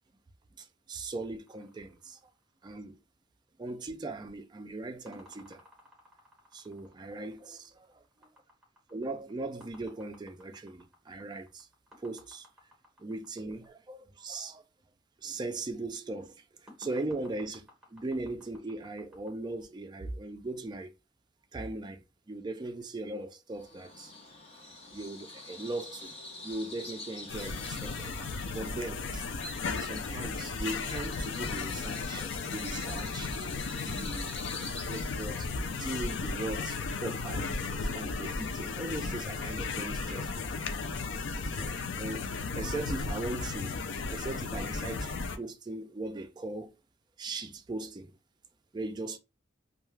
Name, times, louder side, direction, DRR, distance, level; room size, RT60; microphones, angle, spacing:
voice 1, 0.6-2.3 2.6-3.0 3.6-5.6 6.5-7.6 8.9-11.7 12.0-12.5 13.0-14.6 15.2-20.9 21.5-24.1 24.9-26.1 26.4-29.2 29.6-32.3 32.5-33.3 33.7-34.4 34.9-40.5 41.3-46.7 47.2-48.1 48.7-49.2, right 2 dB, 20° right, 0.3 m, -39 dB
sound 1, 1.5-2.9 5.1-13.7 16.7-19.3, left 1 dB, 5° right, 1.1 m, -58 dB
Bird vocalization bird call bird song, 23.5-38.3, left 2 dB, 30° left, 0.8 m, -47 dB
sound 2, 27.3-45.4, left 4 dB, 65° left, 0.4 m, -35 dB
2.3 x 2.2 x 3.1 m
head